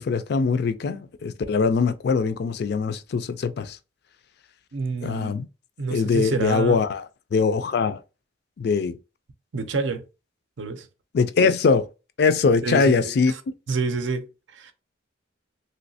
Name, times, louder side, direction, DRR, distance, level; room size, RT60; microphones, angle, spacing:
voice 1, 0.0-3.8 5.0-5.5 5.9-7.0 7.3-8.0 8.6-9.0 11.1-11.8 12.2-13.3, left 4 dB, 55° left, 0.3 m, -22 dB
voice 2, 4.7-5.4 5.8-6.8 9.5-10.0 10.6-10.9 12.6-13.4 13.7-14.7, right 4 dB, 75° right, 0.5 m, -28 dB
3.1 x 2.7 x 2.7 m
head